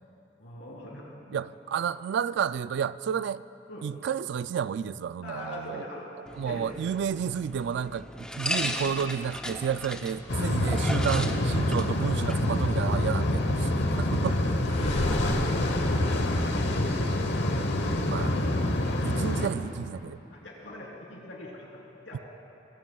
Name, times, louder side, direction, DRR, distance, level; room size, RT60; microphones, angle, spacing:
voice 1, 0.4-1.4 3.7-3.9 5.2-6.1 6.4-6.7 8.5-8.7 14.3-14.5 14.9-17.0 20.3-22.2, left 1 dB, 90° left, 3.4 m, -43 dB
voice 2, 1.3-3.4 3.8-5.8 6.4-13.7 14.0-14.5 18.1-18.4 19.0-20.2 22.1-22.2, right 7 dB, 65° right, 0.3 m, -31 dB
sound 1, 6.3-14.2, left 1 dB, 5° left, 0.6 m, -38 dB
sound 2, 10.3-19.5, left 1 dB, 65° left, 1.0 m, -26 dB
sound 3, 14.5-17.5, left 1 dB, 35° left, 1.4 m, -37 dB
22.5 x 16.5 x 2.3 m
head